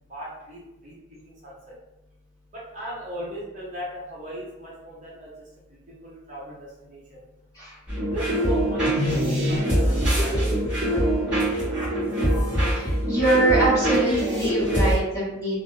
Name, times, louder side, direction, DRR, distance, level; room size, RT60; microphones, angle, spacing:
voice 1, 0.1-1.7 2.5-5.3 5.9-7.0 8.1-10.6 10.9-12.1, equal, 40° right, -5 dB, 0.6 m, -38 dB
sound 1, 7.9-15.0, right 1 dB, 5° right, 1.2 m, -23 dB
voice 2, 12.7-15.6, right 2 dB, 15° left, -10 dB, 1.3 m, -24 dB
2.5 x 2.3 x 3.1 m, 0.92 s
head